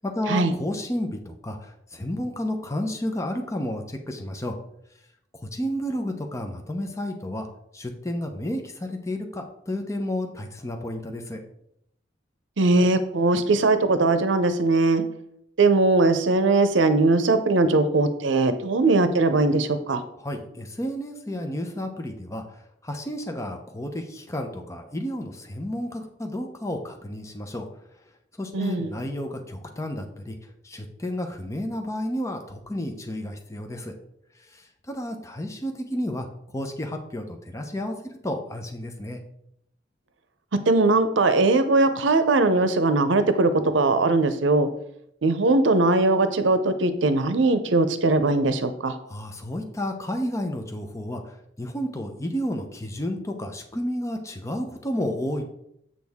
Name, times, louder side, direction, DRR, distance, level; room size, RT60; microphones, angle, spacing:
voice 1, 0.1-4.6 5.4-7.5 7.7-11.4 20.2-22.4 22.8-27.6 28.4-30.4 30.6-33.9 34.5-34.6 34.9-36.3 36.5-39.2 49.1-51.2 51.6-55.4, left 1 dB, 15° left, 4 dB, 0.7 m, -31 dB
voice 2, 12.6-15.0 15.6-20.0 28.5-28.9 40.7-44.7 45.2-49.0, right 2 dB, 85° right, 10 dB, 0.6 m, -20 dB
7.5 x 6.1 x 3.6 m, 0.76 s
head